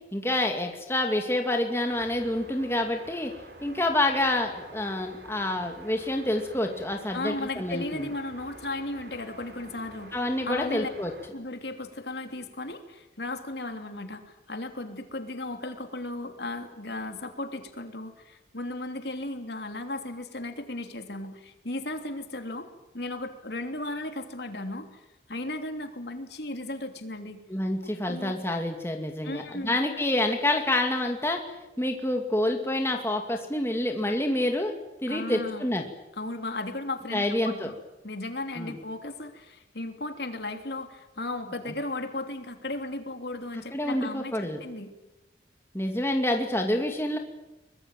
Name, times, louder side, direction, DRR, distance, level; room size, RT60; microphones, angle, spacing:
voice 1, 0.1-3.3 3.6-8.1 10.1-11.1 27.5-31.4 31.8-34.7 35.0-35.8 37.1-37.7 38.6-38.8 43.7-44.6 45.7-47.2, left 1 dB, 15° left, 3 dB, 2.4 m, -27 dB
sound 1, 1.9-11.3, right 1 dB, 60° right, 4.6 m, -48 dB
voice 2, 7.1-10.2 10.4-10.9 11.3-22.7 22.9-25.0 25.3-27.4 28.0-28.4 29.2-29.8 35.1-35.7 36.2-37.7 38.0-44.9, left 2 dB, 65° left, 6 dB, 3.1 m, -35 dB
23.5 x 21.5 x 9.2 m, 0.96 s
head